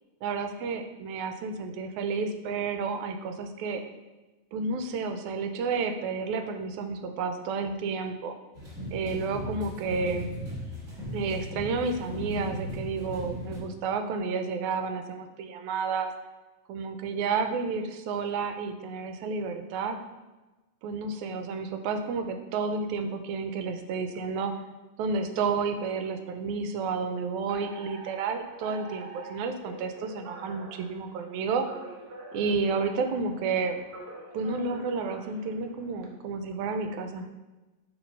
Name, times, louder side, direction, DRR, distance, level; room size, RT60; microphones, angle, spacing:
voice 1, 0.2-3.8 4.5-8.3 8.9-10.3 11.1-16.1 16.7-20.0 20.8-24.5 25.0-31.7 32.3-33.8 34.3-37.3, right 4 dB, 85° right, 6 dB, 2.0 m, -31 dB
sound 1, 8.5-13.6, left 1 dB, 30° right, 1.6 m, -37 dB
Alarm, 27.5-36.1, right 2 dB, 60° right, 1.4 m, -46 dB
6.2 x 3.8 x 5.2 m, 1.1 s
omnidirectional pair, 3.3 m